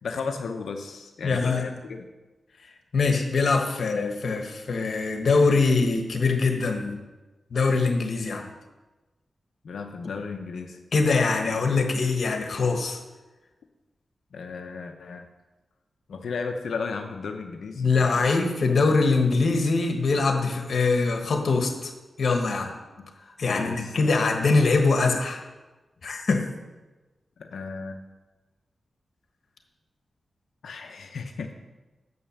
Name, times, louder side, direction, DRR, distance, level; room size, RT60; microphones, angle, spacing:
voice 1, 0.0-2.1 9.6-10.8 14.3-15.3 16.1-18.4 23.0-23.1 23.5-23.9 27.4-28.0 30.6-31.5, left 4 dB, 85° left, 5 dB, 0.7 m, -34 dB
voice 2, 1.2-1.6 2.9-7.0 7.5-8.5 10.9-13.0 17.8-21.9 22.2-22.7 23.4-25.4 26.0-26.5, left 4 dB, 70° left, 4 dB, 1.3 m, -23 dB
7.6 x 5.6 x 6.5 m, 1.1 s
cardioid pair, 55°, 0 cm